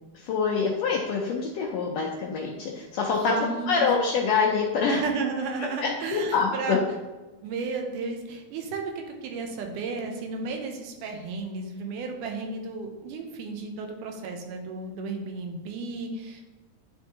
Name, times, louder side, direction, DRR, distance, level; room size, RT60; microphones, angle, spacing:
voice 1, 0.1-5.0 5.6-6.8, left 5 dB, 80° left, -1 dB, 1.5 m, -26 dB
voice 2, 3.2-3.8 4.9-6.8 7.4-16.4, right 4 dB, 85° right, 3 dB, 2.3 m, -33 dB
10.0 x 3.5 x 2.7 m, 1.1 s
omnidirectional pair, 3.6 m